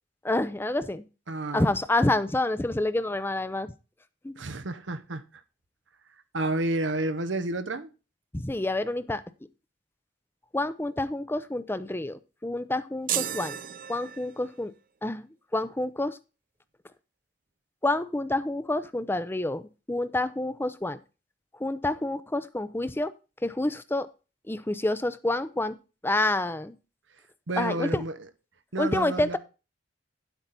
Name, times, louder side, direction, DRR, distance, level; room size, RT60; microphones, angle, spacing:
voice 1, 0.2-1.0 1.5-3.7 4.2-4.3 8.3-9.2 10.5-13.6 13.9-14.7 15.0-15.3 15.5-16.2 17.8-21.0 21.6-23.1 23.4-24.1 24.5-25.8 26.0-26.7 27.6-28.0 28.8-29.4, left 2 dB, 10° left, 0.5 m, -28 dB
voice 2, 1.3-1.7 4.4-5.4 6.3-7.9 27.5-28.2 28.7-29.4, right 2 dB, 85° right, 1.0 m, -30 dB
sound 1, 13.1-14.6, right 11 dB, 50° right, 0.5 m, -33 dB
10.5 x 8.1 x 4.1 m
head